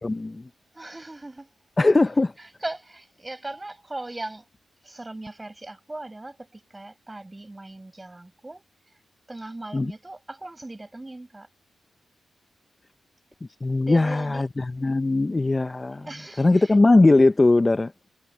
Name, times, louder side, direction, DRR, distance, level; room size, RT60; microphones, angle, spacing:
voice 1, 0.0-0.5 1.8-2.3 9.7-9.9 13.6-16.1 16.4-17.9, left 2 dB, 25° left, 0.5 m, -20 dB
voice 2, 0.7-1.5 2.4-4.5 4.8-8.7 9.3-11.5 13.8-14.4 16.0-16.8, right 2 dB, 20° right, 7.9 m, -38 dB
cardioid pair, 75°, 0 cm